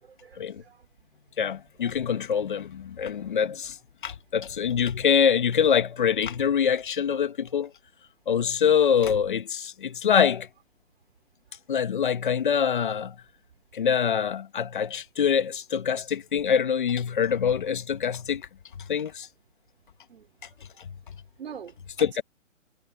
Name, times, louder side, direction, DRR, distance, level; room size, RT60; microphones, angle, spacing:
voice 1, 0.0-0.9 1.8-1.9 5.0-5.1 20.1-20.6 21.4-22.2, right 7 dB, 50° right, 5.2 m, -45 dB
voice 2, 1.4-3.7 4.0-7.7 8.3-10.5 11.7-13.1 13.7-18.4 18.9-19.3 22.0-22.2, left 7 dB, 40° left, 1.9 m, -24 dB
hypercardioid pair, 175°, 39 cm